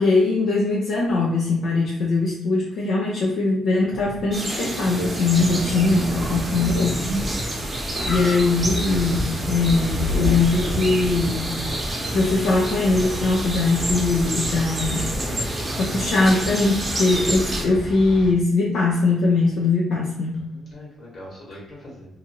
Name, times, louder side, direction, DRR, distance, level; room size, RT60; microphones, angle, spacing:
voice 1, 0.0-7.5 8.1-11.6 12.1-15.1 15.8-20.3, left 3 dB, 75° left, -4 dB, 0.6 m, -21 dB
sound 1, 3.9-11.4, equal, 70° right, 0.5 m, -32 dB
sound 2, 4.3-17.6, right 1 dB, 25° right, 0.8 m, -29 dB
sound 3, 5.4-18.3, equal, 10° left, 0.6 m, -32 dB
voice 2, 20.3-22.1, left 1 dB, 55° left, -4 dB, 1.5 m, -42 dB
2.8 x 2.4 x 2.8 m, 0.81 s
cardioid pair, 95°, 0 cm